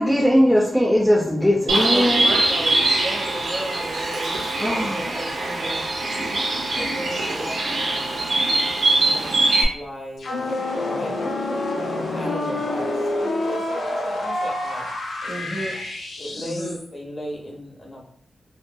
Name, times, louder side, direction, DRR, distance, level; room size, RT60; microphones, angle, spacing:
voice 1, 0.0-2.2 4.6-5.0, equal, 5° left, -5 dB, 0.6 m, -19 dB
Bird, 1.7-9.6, right 2 dB, 75° right, 0.7 m, -22 dB
voice 2, 1.9-4.4 4.7-5.8 12.1-12.6 15.3-15.7 16.3-16.8, right 1 dB, 30° right, -2 dB, 1.0 m, -33 dB
voice 3, 6.8-8.3 9.0-9.4 9.7-10.4 10.8-11.2 12.1-12.9 13.2-14.8 15.4-15.8 16.2-18.0, equal, 40° left, -2 dB, 0.8 m, -36 dB
sound 1, 10.2-16.9, left 2 dB, 80° left, 0.5 m, -27 dB
2.6 x 2.5 x 2.3 m, 0.64 s
cardioid pair, 70°, 0 cm